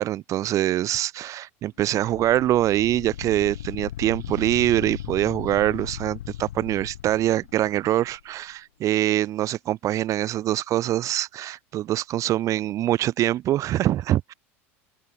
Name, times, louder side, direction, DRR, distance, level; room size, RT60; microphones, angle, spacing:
voice 1, 0.0-14.3, right 13 dB, 45° right, 0.7 m, -24 dB
sound 1, 2.0-8.2, left 12 dB, 85° left, 1.0 m, -37 dB
open air
hypercardioid pair, 95°, 8 cm